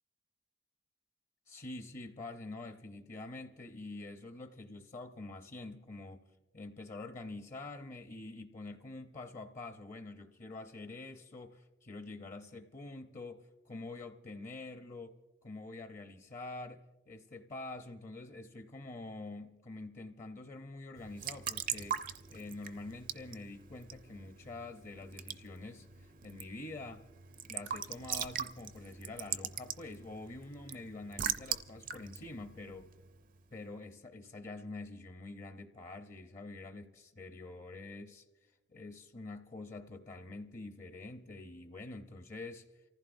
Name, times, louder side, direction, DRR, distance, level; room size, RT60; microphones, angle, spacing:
voice 1, 1.5-6.2 6.5-15.2 15.4-22.0 22.3-27.1 27.5-32.9 33.5-38.2 38.7-42.7, left 2 dB, 45° left, 6 dB, 0.7 m, -46 dB
Raindrop / Drip / Trickle dribble, 21.0-33.4, right 9 dB, 45° right, 0.5 m, -42 dB
28.5 x 15.0 x 2.6 m, 1.1 s
head